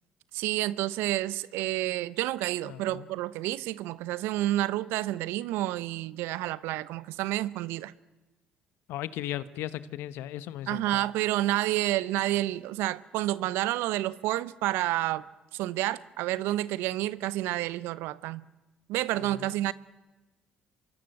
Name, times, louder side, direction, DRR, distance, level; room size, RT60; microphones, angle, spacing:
voice 1, 0.3-7.9 10.7-15.3 15.5-18.4 18.9-19.7, right 15 dB, 70° right, 0.9 m, -29 dB
voice 2, 2.6-3.1 8.9-11.0 19.1-19.6, left 13 dB, 70° left, 1.1 m, -37 dB
25.5 x 23.5 x 7.8 m
hypercardioid pair, 55°, 4 cm